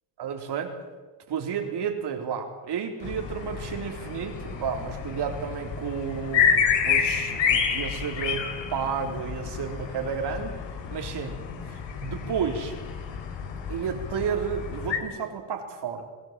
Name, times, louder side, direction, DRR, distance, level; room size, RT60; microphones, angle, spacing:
voice 1, 0.2-0.8 1.3-8.4 8.7-10.5 10.9-11.4 11.7-12.7 13.7-16.1, right 7 dB, 60° right, 3 dB, 4.1 m, -32 dB
sound 1, 3.0-15.0, left 7 dB, 65° left, 3.8 m, -29 dB
27.5 x 18.5 x 7.7 m, 1.3 s
cardioid pair, 95°, 47 cm